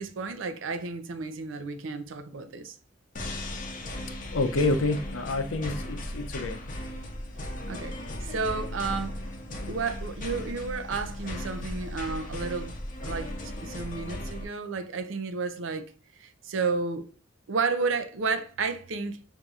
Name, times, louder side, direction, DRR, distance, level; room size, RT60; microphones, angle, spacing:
voice 1, 0.0-2.8 7.7-9.2 9.5-12.8 13.0-17.0 17.5-19.2, right 4 dB, 70° right, 0.5 m, -32 dB
sound 1, 3.2-14.4, left 1 dB, 40° left, 0.7 m, -36 dB
voice 2, 4.3-6.6, left 2 dB, 80° left, 0.6 m, -28 dB
5.4 x 2.6 x 2.3 m
head